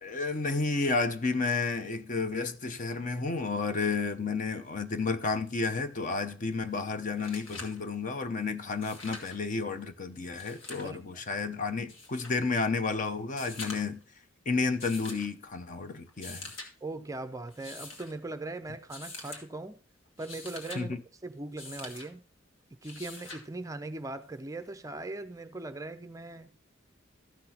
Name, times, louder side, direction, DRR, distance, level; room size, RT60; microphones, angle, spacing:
voice 1, 0.0-14.0 14.5-16.5 20.7-21.0, left 4 dB, 40° left, 0.7 m, -31 dB
sound 1, 6.8-6.9 7.1-7.8 8.7-9.4 10.2-10.9 11.9-12.4 13.3-14.0 14.8-15.3 16.1-16.7 17.5-18.1 18.9-19.4 20.1-20.8 21.6-22.1 22.8-23.5 24.9-25.0, left 3 dB, 70° left, 1.9 m, -44 dB
voice 2, 16.8-19.8 20.2-20.9 21.2-22.2 22.8-26.6, right 2 dB, 15° right, 0.4 m, -40 dB
14.5 x 6.0 x 2.8 m
head